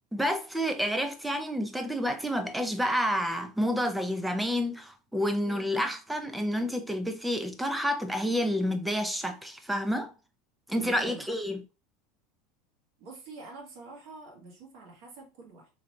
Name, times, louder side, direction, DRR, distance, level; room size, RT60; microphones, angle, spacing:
voice 1, 0.1-10.1 10.7-11.6, equal, 5° right, 0.5 m, -29 dB
voice 2, 10.8-11.3 13.0-15.7, right 3 dB, 60° right, 1.6 m, -47 dB
3.8 x 3.2 x 2.8 m
supercardioid pair, 150°, 0 cm